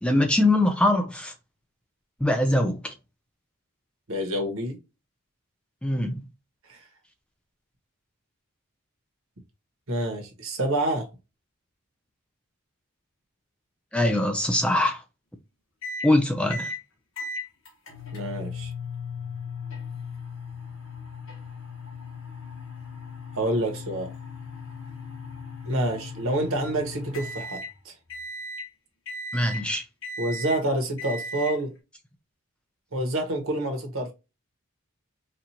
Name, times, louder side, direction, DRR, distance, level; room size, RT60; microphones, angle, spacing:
voice 1, 0.0-1.3 2.2-2.9 5.8-6.2 13.9-15.0 16.0-16.7 29.3-29.8, left 1 dB, 5° left, 0.3 m, -22 dB
voice 2, 4.1-4.8 6.7-6.8 9.9-11.1 18.1-18.7 23.3-24.1 25.6-27.9 30.2-31.7 32.9-34.1, right 1 dB, 75° right, 1.2 m, -28 dB
sound 1, 15.8-16.1 16.5-16.8 17.2-27.7 28.1-28.7 29.1-29.6 30.0-30.6 31.0-31.5, left 3 dB, 65° left, 1.2 m, -37 dB
4.3 x 2.6 x 2.8 m
head